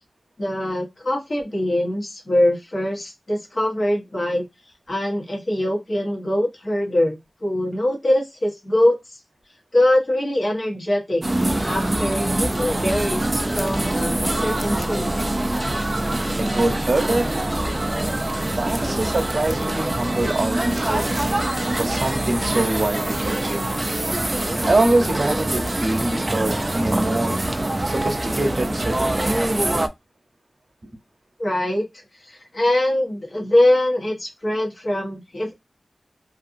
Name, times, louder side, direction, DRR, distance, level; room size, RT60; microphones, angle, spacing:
voice 1, 0.4-4.4 4.9-9.0 9.7-11.2 11.6-15.1 31.4-31.8 32.3-35.5, left 1 dB, 50° left, 1.0 m, -22 dB
sound 1, 11.2-29.9, right 1 dB, 25° right, 0.3 m, -24 dB
voice 2, 16.4-17.3 18.4-21.2 21.8-23.7 24.6-27.4 27.8-29.2, right 2 dB, 55° right, 0.8 m, -24 dB
2.5 x 2.5 x 2.5 m
wide cardioid pair, 90°, 0 cm